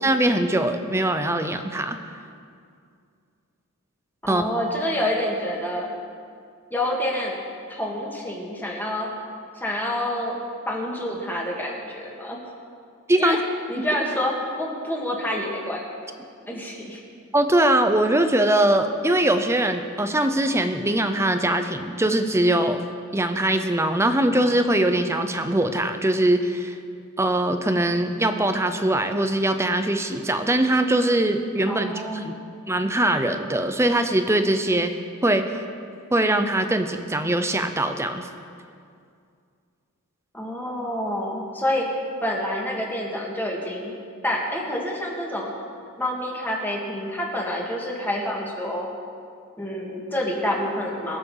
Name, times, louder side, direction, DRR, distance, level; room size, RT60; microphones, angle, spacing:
voice 1, 0.0-2.0 4.3-4.4 13.1-13.4 13.8-13.9 17.3-22.8 23.1-26.8 27.2-32.3 32.7-34.9 35.2-35.5 36.1-38.3, right 1 dB, 10° right, 8 dB, 0.7 m, -22 dB
voice 2, 4.2-5.9 6.7-7.4 7.7-9.1 9.6-10.3 10.7-12.4 13.2-13.4 13.7-15.8 16.5-17.0 31.7-32.3 40.3-41.9 42.2-43.9 44.2-45.5 46.0-48.9 49.6-51.2, left 1 dB, 10° left, -2 dB, 1.9 m, -27 dB
23.0 x 7.7 x 4.9 m, 2.3 s
head